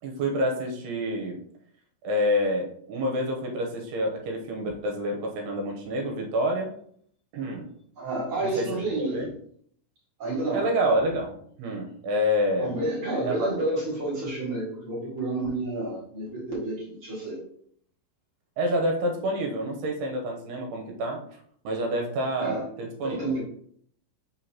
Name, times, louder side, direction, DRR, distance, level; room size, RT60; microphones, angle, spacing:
voice 1, 0.0-1.4 2.0-6.7 7.3-7.7 8.4-8.7 9.0-9.3 10.5-12.8 13.2-13.5 18.6-21.2 21.6-23.3, equal, 75° right, 1 dB, 2.8 m, -28 dB
voice 2, 8.0-9.2 10.2-10.7 12.6-17.4 22.4-22.6 23.0-23.4, right 2 dB, 45° right, -7 dB, 1.9 m, -30 dB
6.2 x 5.5 x 2.9 m, 0.64 s
omnidirectional pair, 5.0 m